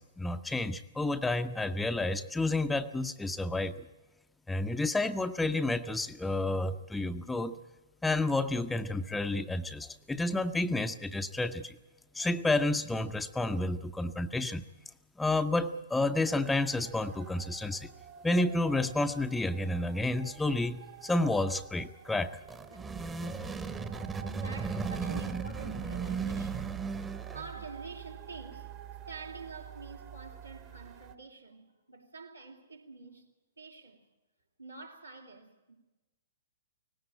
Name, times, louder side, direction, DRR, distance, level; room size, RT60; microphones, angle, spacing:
voice 1, 0.0-3.7 4.5-7.6 8.0-11.8 12.1-14.6 15.2-17.9 18.2-22.4, left 2 dB, 5° left, 0.6 m, -30 dB
sound 1, 16.2-31.1, right 11 dB, 30° right, 1.0 m, -47 dB
sound 2, 22.3-27.6, right 4 dB, 10° right, 0.9 m, -36 dB
voice 2, 24.3-33.3 33.6-34.1 34.6-35.8, right 3 dB, 85° right, 2.7 m, -48 dB
19.0 x 16.5 x 8.6 m
figure-of-eight pair, 115°, 0 cm